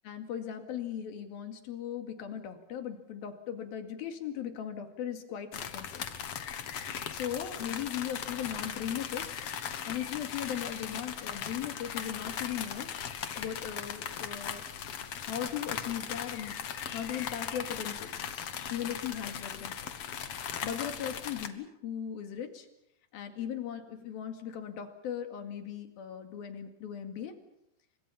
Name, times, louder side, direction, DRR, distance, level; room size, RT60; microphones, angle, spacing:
voice 1, 0.0-6.0 7.1-9.3 9.9-12.9 13.4-14.6 15.2-16.6 16.9-18.2 18.7-19.8 20.6-22.7 23.1-27.3, left 9 dB, 80° left, 6 dB, 4.0 m, -38 dB
sound 1, 5.5-21.5, left 8 dB, 55° left, 2.0 m, -38 dB
30.0 x 24.5 x 5.8 m, 0.83 s
omnidirectional pair, 4.2 m